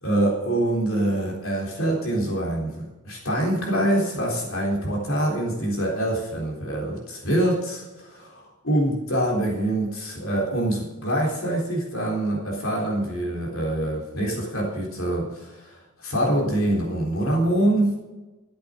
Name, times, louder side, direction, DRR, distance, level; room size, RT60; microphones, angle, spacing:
voice 1, 0.0-18.0, right 1 dB, 65° left, -2 dB, 3.8 m, -25 dB
14.0 x 8.2 x 6.4 m, 1.1 s
head